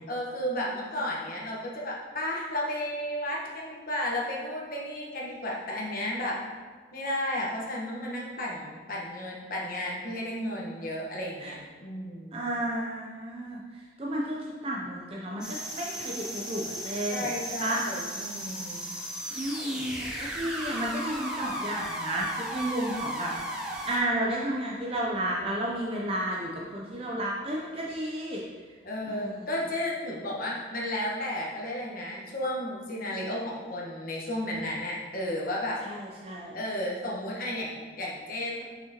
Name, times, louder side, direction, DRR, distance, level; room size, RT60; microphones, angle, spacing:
voice 1, 0.1-6.4 6.9-12.4 17.1-18.9 28.8-35.8 36.5-38.6, left 1 dB, 50° left, -3 dB, 1.2 m, -33 dB
voice 2, 12.3-17.3 17.6-17.8 19.3-28.4 29.1-29.5 35.8-36.6, right 1 dB, 30° right, -3 dB, 0.6 m, -32 dB
sound 1, 15.4-24.0, right 1 dB, 5° right, 0.8 m, -36 dB
6.0 x 5.7 x 2.9 m, 1.5 s
head